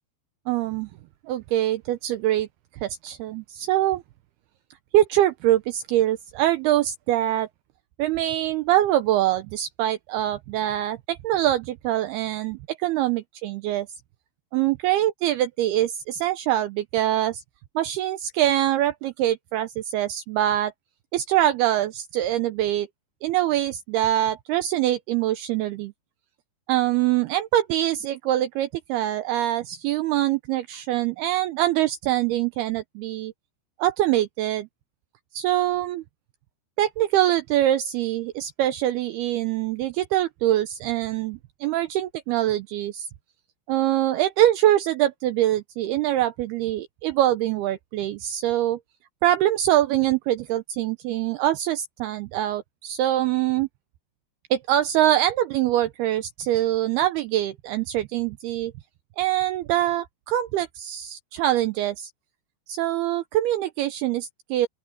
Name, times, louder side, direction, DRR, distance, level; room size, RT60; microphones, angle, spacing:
voice 1, 0.5-0.9 1.3-2.5 2.8-4.0 4.9-7.5 8.0-13.9 14.5-17.4 17.8-20.7 21.1-22.9 23.2-25.9 26.7-33.3 33.8-34.7 35.3-36.0 36.8-43.1 43.7-48.8 49.2-53.7 54.5-58.7 59.2-62.1 62.7-64.7, right 13 dB, 85° right, 2.3 m, -24 dB
open air
omnidirectional pair, 5.3 m